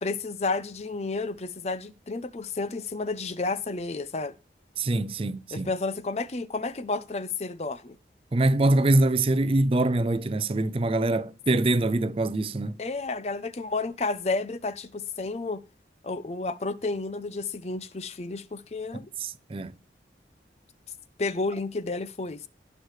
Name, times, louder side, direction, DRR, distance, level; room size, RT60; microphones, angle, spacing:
voice 1, 0.0-4.4 5.5-8.0 12.8-15.6 16.0-19.1 21.2-22.5, left 3 dB, 35° left, 0.5 m, -31 dB
voice 2, 4.8-5.7 8.3-12.8 19.2-19.7, right 2 dB, 30° right, 0.4 m, -24 dB
18.0 x 6.3 x 3.2 m
head